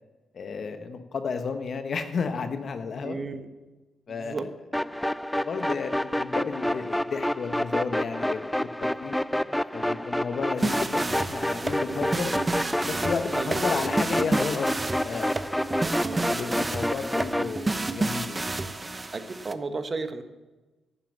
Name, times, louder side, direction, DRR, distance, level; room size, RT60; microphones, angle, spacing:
voice 1, 0.3-3.2 4.1-4.4 5.4-8.7 9.0-12.3 12.8-14.7 15.0-15.4 16.3-18.4, left 5 dB, 55° left, 8 dB, 1.2 m, -32 dB
voice 2, 3.0-3.5 4.1-4.5 13.3-13.8 15.8-16.3 19.1-20.2, right 3 dB, 45° right, 9 dB, 1.3 m, -34 dB
sound 1, 4.7-17.5, left 1 dB, 5° left, 0.3 m, -29 dB
sound 2, 10.6-19.5, right 2 dB, 25° right, 0.8 m, -30 dB
10.5 x 7.5 x 8.5 m, 1.2 s
supercardioid pair, 50°, 0 cm